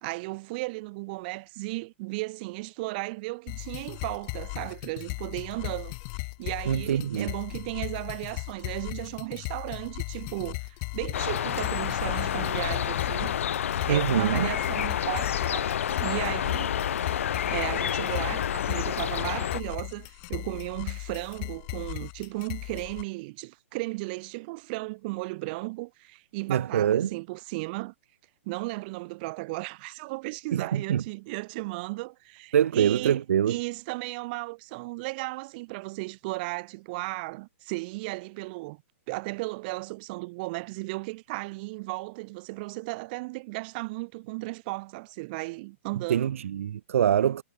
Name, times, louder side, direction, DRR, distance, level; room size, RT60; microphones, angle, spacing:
voice 1, 0.0-15.7 16.0-16.8 17.5-27.9 28.5-38.8 39.1-46.3, right 24 dB, 45° right, 4.0 m, -35 dB
sound 1, 3.5-23.0, left 40 dB or more, 40° left, 3.5 m, -37 dB
voice 2, 6.7-7.3 13.9-14.5 26.5-27.1 30.5-31.0 32.5-33.6 46.1-47.4, right 9 dB, 75° right, 1.0 m, -24 dB
sound 2, 11.1-19.6, left 9 dB, 70° left, 2.2 m, -29 dB
hypercardioid pair, 140°, 7 cm